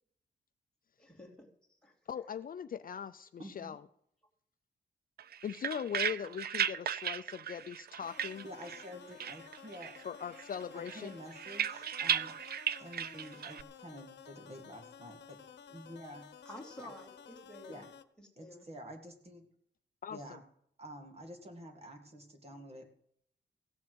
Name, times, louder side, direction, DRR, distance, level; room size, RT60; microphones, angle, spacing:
voice 1, 1.0-1.5 1.8-1.9 16.4-17.8 18.2-18.7, left 1 dB, 5° left, -1 dB, 2.7 m, -50 dB
voice 2, 2.1-3.8 5.4-8.4 10.0-11.1 20.0-20.4, left 8 dB, 50° left, 11 dB, 0.5 m, -40 dB
voice 3, 3.4-3.8 8.4-9.9 10.9-12.3 12.8-15.4 15.7-16.2 16.8-16.9 17.7-17.9 18.4-19.4 20.1-20.4 20.8-22.9, equal, 35° right, 4 dB, 2.0 m, -49 dB
sound 1, 5.2-8.9 9.2-10.1 10.4-13.6, right 9 dB, 55° right, 0.4 m, -36 dB
sound 2, 8.0-18.0, left 7 dB, 65° left, 1.0 m, -54 dB
16.0 x 7.5 x 7.9 m, 0.70 s
wide cardioid pair, 170°, 19 cm